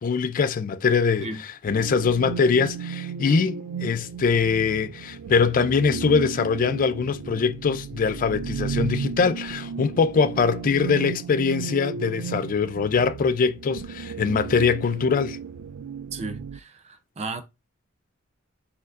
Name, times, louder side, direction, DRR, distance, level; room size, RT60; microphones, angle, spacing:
voice 1, 0.0-15.4, left 5 dB, 40° left, 0.3 m, -23 dB
sound 1, 1.7-16.6, right 6 dB, 80° right, 0.3 m, -34 dB
voice 2, 16.1-17.4, right 3 dB, 35° right, 0.6 m, -34 dB
4.2 x 4.0 x 2.5 m
head